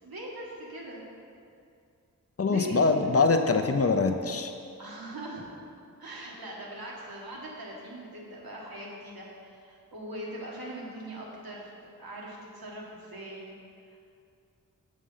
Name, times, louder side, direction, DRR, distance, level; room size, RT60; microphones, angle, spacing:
voice 1, 0.0-1.1 2.4-3.1 4.8-5.5 5.8-13.5 13.9-14.0, right 1 dB, 80° right, -4 dB, 1.7 m, -41 dB
voice 2, 2.4-4.5, left 4 dB, 40° left, 6 dB, 0.6 m, -24 dB
6.4 x 6.4 x 5.6 m, 2.4 s
wide cardioid pair, 55°, 36 cm